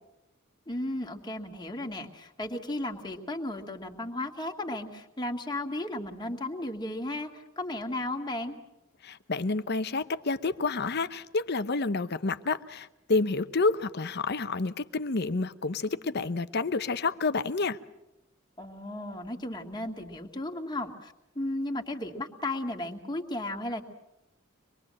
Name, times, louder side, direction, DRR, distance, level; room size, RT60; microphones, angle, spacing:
voice 1, 0.7-8.6 18.6-23.8, left 1 dB, 20° left, 2.0 m, -35 dB
voice 2, 9.0-17.8, left 3 dB, 55° left, 0.9 m, -29 dB
25.0 x 21.5 x 7.7 m
head